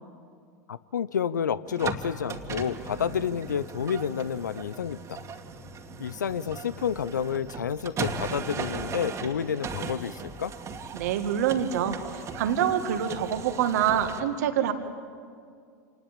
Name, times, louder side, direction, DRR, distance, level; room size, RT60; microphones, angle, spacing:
voice 1, 0.7-5.2 6.0-10.5, left 7 dB, 80° left, 17 dB, 0.6 m, -30 dB
sound 1, 1.7-14.2, right 4 dB, 30° right, 2.4 m, -38 dB
voice 2, 10.9-14.7, right 9 dB, 65° right, 7 dB, 2.0 m, -26 dB
27.0 x 20.0 x 8.9 m, 2.2 s
hypercardioid pair, 90°, 10 cm